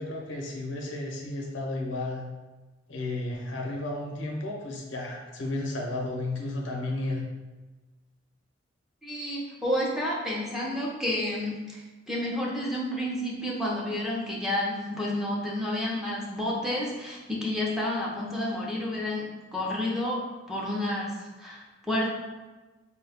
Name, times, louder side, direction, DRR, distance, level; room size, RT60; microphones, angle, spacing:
voice 1, 0.0-2.3 2.9-7.2, left 2 dB, 90° left, 0 dB, 0.8 m, -33 dB
voice 2, 9.0-11.8 12.1-19.2 19.5-20.2 20.5-21.1 21.4-22.1, left 1 dB, ahead, -5 dB, 0.7 m, -30 dB
4.7 x 2.3 x 3.5 m, 1.2 s
head